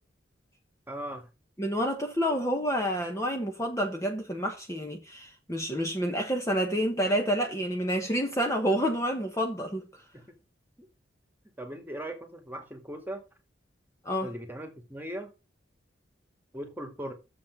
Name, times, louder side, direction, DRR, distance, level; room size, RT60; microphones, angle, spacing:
voice 1, 0.9-1.3 10.1-10.2 10.8-10.9 11.4-13.3 14.2-15.3 16.5-17.1, right 1 dB, 10° right, 2.1 m, -39 dB
voice 2, 1.6-9.8 14.0-14.3, equal, 15° left, 1.2 m, -29 dB
7.4 x 7.3 x 5.4 m
head